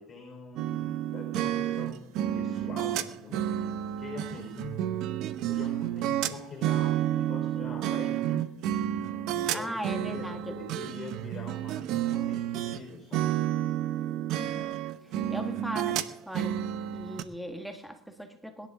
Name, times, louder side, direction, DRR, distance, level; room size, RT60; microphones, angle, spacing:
voice 1, 0.0-2.1 2.3-3.6 4.0-4.8 5.5-8.4 9.3-13.3, left 3 dB, 35° left, 2 dB, 4.0 m, -44 dB
sound 1, 0.6-12.8 13.1-17.2, right 11 dB, 65° right, 0.9 m, -30 dB
voice 2, 9.5-10.6 14.3-16.6 16.9-18.7, equal, ahead, 5 dB, 1.7 m, -39 dB
21.5 x 11.0 x 3.7 m, 0.79 s
supercardioid pair, 105°, 0 cm